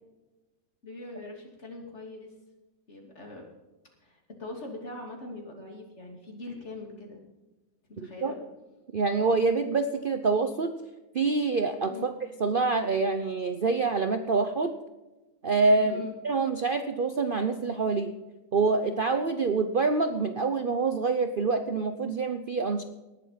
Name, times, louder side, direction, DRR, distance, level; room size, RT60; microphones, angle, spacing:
voice 1, 0.8-2.3 2.9-3.4 4.0-7.2 7.9-8.4 11.9-12.1 15.8-16.1, left 2 dB, 35° left, 2 dB, 3.1 m, -42 dB
voice 2, 8.9-10.7 11.1-12.1 12.4-14.8 15.4-18.1 18.5-22.8, right 4 dB, 70° right, 8 dB, 0.5 m, -26 dB
19.0 x 8.0 x 5.8 m, 1.1 s
omnidirectional pair, 2.1 m